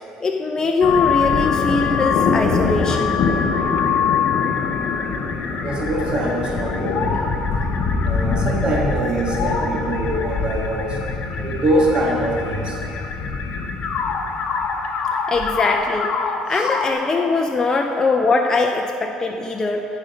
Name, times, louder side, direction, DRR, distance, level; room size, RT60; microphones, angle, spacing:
voice 1, 0.2-3.2 15.3-16.1 16.5-19.9, left 3 dB, 25° left, 3 dB, 0.6 m, -21 dB
sound 1, 0.8-16.9, left 5 dB, 60° left, 0.9 m, -23 dB
voice 2, 5.6-7.3 8.0-11.0 11.4-12.8 16.5-16.7, right 1 dB, 40° right, -2 dB, 1.8 m, -23 dB
14.5 x 5.1 x 5.4 m, 2.8 s
supercardioid pair, 85°, 2 cm